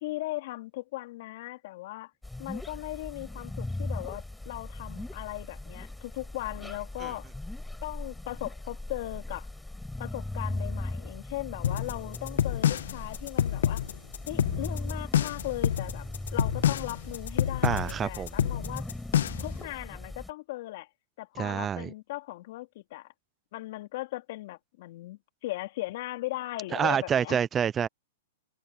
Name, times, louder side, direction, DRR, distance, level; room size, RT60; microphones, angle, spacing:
voice 1, 0.0-2.1 2.4-7.3 7.8-9.5 10.0-13.8 14.3-18.9 19.4-20.9 21.2-23.1 23.5-27.4, left 18 dB, 55° left, 3.0 m, -38 dB
sound 1, 2.2-20.3, left 2 dB, 5° left, 4.7 m, -39 dB
sound 2, 11.6-19.6, left 10 dB, 75° left, 1.3 m, -27 dB
voice 2, 17.6-18.3 21.4-21.9 26.7-27.9, right 8 dB, 20° right, 0.6 m, -27 dB
hypercardioid pair, 140°, 0 cm